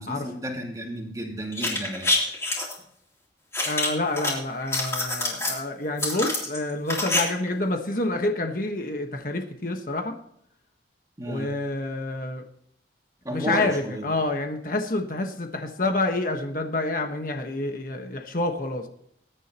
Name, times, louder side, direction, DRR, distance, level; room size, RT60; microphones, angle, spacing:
voice 1, 0.0-2.3 11.2-11.6 13.2-14.1, equal, 20° right, 1 dB, 2.4 m, -33 dB
sound 1, 1.5-2.7 3.5-4.3 4.6-5.6 6.0-7.2 7.5-7.6, left 2 dB, 15° left, 3.3 m, -26 dB
voice 2, 3.6-10.2 11.2-12.4 13.3-18.9, left 2 dB, 50° left, 4 dB, 1.4 m, -28 dB
21.0 x 10.0 x 3.0 m, 0.72 s
head